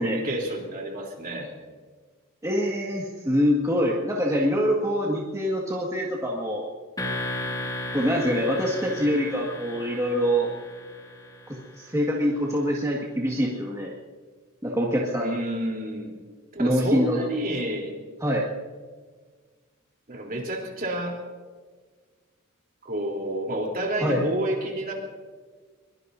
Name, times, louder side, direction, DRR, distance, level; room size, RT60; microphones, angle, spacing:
voice 1, 0.0-1.5 15.2-16.1 16.5-17.9 20.1-21.2 22.8-24.9, right 1 dB, 45° right, 0 dB, 3.5 m, -29 dB
voice 2, 2.4-6.7 7.9-10.5 11.5-13.9 14.6-15.3 16.6-17.2 18.2-18.5 24.0-24.2, equal, 15° right, -3 dB, 1.8 m, -25 dB
sound 1, 7.0-11.9, left 1 dB, 20° left, 2.2 m, -35 dB
23.0 x 22.5 x 2.7 m, 1.5 s
head